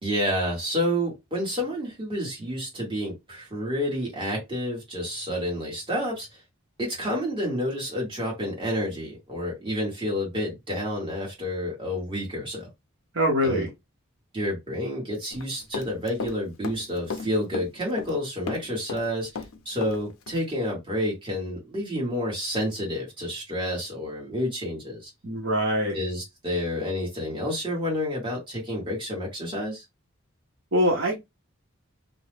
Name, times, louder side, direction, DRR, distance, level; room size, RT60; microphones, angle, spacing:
voice 1, 0.0-6.3 6.8-12.7 13.4-13.7 14.3-25.1 25.9-29.8, equal, 25° right, 1.3 m, -29 dB
voice 2, 13.1-13.7 25.2-26.0 30.7-31.2, equal, 60° right, 0.9 m, -23 dB
Run, 15.3-16.4 16.6-18.2 18.5-20.0 20.3-20.4, left 4 dB, 75° left, 0.5 m, -34 dB
2.5 x 2.1 x 3.2 m
head